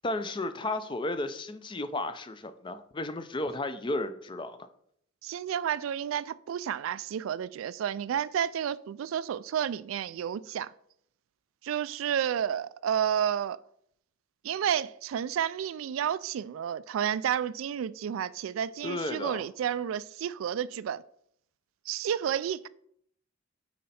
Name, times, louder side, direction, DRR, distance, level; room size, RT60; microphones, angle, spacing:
voice 1, 0.0-4.6 18.8-19.4, left 2 dB, 25° left, 0.5 m, -33 dB
voice 2, 5.2-10.7 11.6-13.6 14.4-21.0 21.9-22.7, right 9 dB, 85° right, 0.3 m, -31 dB
9.2 x 4.3 x 4.2 m
head